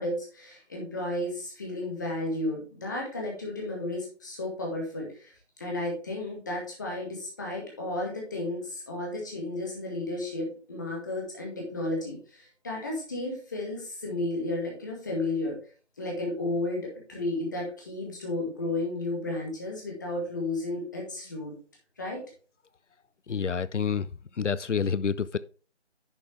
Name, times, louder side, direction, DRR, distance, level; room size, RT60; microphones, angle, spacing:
voice 1, 0.0-5.3 5.6-15.6 16.0-21.6 22.0-22.2, left 2 dB, 15° left, 1.9 m, -33 dB
voice 2, 23.3-24.1 24.4-25.4, left 6 dB, 85° left, 0.6 m, -28 dB
10.5 x 5.9 x 3.4 m
figure-of-eight pair, 165°, 35 cm